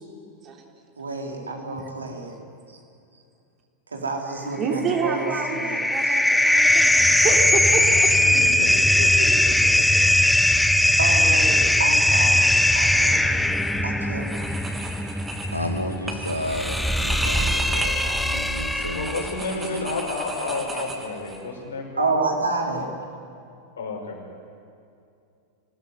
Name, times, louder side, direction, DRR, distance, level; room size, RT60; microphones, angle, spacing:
voice 1, 1.0-2.3 3.9-6.2 11.0-13.2 13.8-14.3 18.0-18.3 22.0-22.9, right 3 dB, 75° right, 4.1 m, -29 dB
voice 2, 4.6-8.1, right 5 dB, 30° right, 3.4 m, -28 dB
sound 1, 4.8-19.4, left 1 dB, 5° left, 1.0 m, -20 dB
voice 3, 8.2-9.8 18.9-22.1 23.8-24.2, left 3 dB, 65° left, 5.8 m, -31 dB
sound 2, 13.4-13.8 14.2-21.4, right 1 dB, 10° right, 3.1 m, -36 dB
voice 4, 15.5-19.1 19.6-20.0, left 1 dB, 90° left, 2.3 m, -32 dB
27.0 x 19.0 x 9.7 m
figure-of-eight pair, 90°, 0 cm